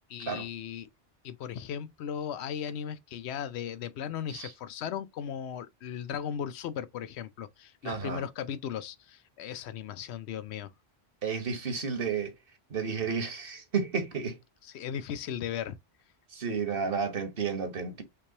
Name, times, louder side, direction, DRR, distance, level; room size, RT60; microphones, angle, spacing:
voice 1, 0.1-0.9 1.2-10.7 14.6-15.8, left 8 dB, 90° left, 0.9 m, -37 dB
voice 2, 7.8-8.2 11.2-12.3 12.7-14.4 16.3-18.0, right 5 dB, 60° right, 1.3 m, -32 dB
5.8 x 3.2 x 2.8 m
omnidirectional pair, 1.1 m